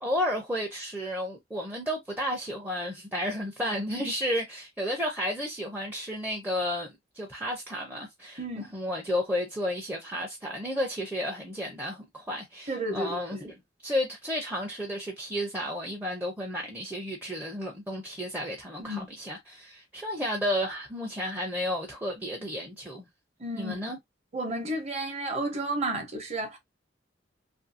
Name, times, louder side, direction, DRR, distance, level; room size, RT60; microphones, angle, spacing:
voice 1, 0.0-13.5 13.8-23.1 23.5-24.0, equal, 10° right, 0.5 m, -32 dB
voice 2, 8.4-8.7 12.7-13.5 18.8-19.1 23.4-23.8 24.3-26.6, right 1 dB, 35° right, 0.8 m, -32 dB
2.7 x 2.6 x 2.5 m
head